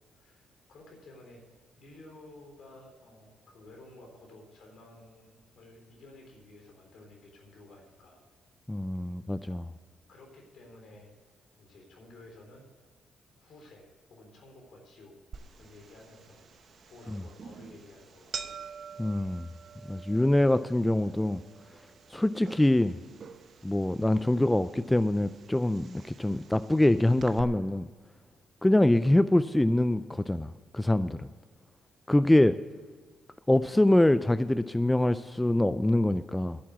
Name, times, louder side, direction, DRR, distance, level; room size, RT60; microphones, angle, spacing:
voice 1, 0.1-8.2 9.4-9.6 10.1-11.1 11.6-12.7 13.4-15.1 15.6-18.6 20.5-20.6, left 2 dB, 65° left, 2 dB, 3.8 m, -53 dB
voice 2, 8.7-9.6 17.1-17.2 19.0-19.5 19.9-21.4 22.1-22.9 23.6-27.8 28.6-31.3 32.1-32.6 33.5-36.6, left 1 dB, 10° left, 14 dB, 0.3 m, -24 dB
sound 1, 15.3-27.4, right 6 dB, 50° right, 0.7 m, -47 dB
11.0 x 7.5 x 8.3 m, 1.5 s
cardioid pair, 90°, 0 cm